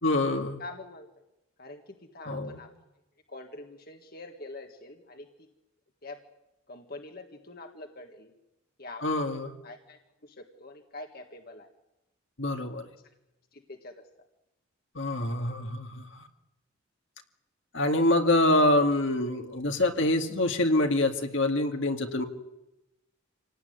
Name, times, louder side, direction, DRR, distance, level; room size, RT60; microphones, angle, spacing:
voice 1, 0.0-0.6 2.3-2.6 9.0-9.6 12.4-12.8 15.0-16.3 17.7-22.2, left 1 dB, 60° left, 4 dB, 2.3 m, -26 dB
voice 2, 0.6-1.1 1.6-2.7 3.3-5.5 6.0-6.2 6.7-8.3 8.8-9.0 9.6-11.7 13.5-14.0, left 2 dB, 45° left, 4 dB, 1.9 m, -45 dB
27.5 x 18.5 x 9.5 m, 0.93 s
head